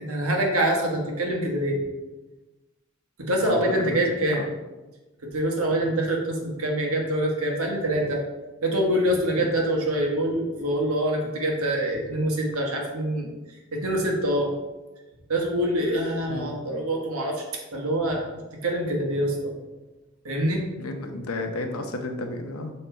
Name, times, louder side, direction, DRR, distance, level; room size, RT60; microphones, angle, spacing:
voice 1, 0.0-1.8 3.2-4.5 5.2-8.2 8.6-13.3 13.7-14.5 15.3-17.4 17.7-18.2 18.6-19.5 20.2-20.6, right 1 dB, 80° right, 0 dB, 1.3 m, -25 dB
voice 2, 3.4-4.0 4.3-4.5 9.4-9.5 16.3-16.5 20.8-22.7, left 2 dB, 80° left, 5 dB, 0.8 m, -32 dB
6.6 x 3.2 x 4.4 m, 1.1 s
head